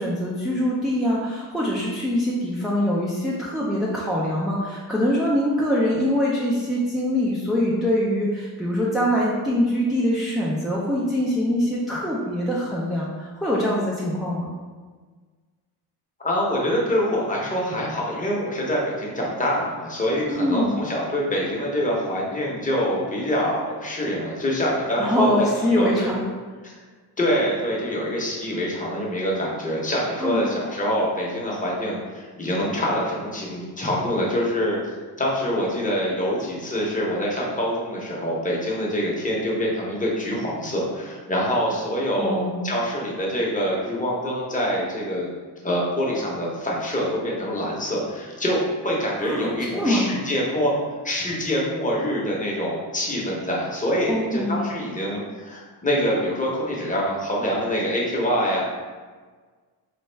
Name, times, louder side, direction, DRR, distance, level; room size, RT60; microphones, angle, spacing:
voice 1, 0.0-14.5 20.3-20.7 25.0-26.2 30.2-30.6 42.2-42.6 49.2-50.1 54.1-54.7, equal, ahead, -6 dB, 0.3 m, -23 dB
voice 2, 16.2-25.5 25.8-26.1 26.6-26.7 27.2-34.8 35.2-45.3 45.6-50.7 51.0-58.6, equal, 20° left, -4 dB, 0.7 m, -25 dB
4.1 x 2.3 x 3.3 m, 1.5 s
wide cardioid pair, 135°, 42 cm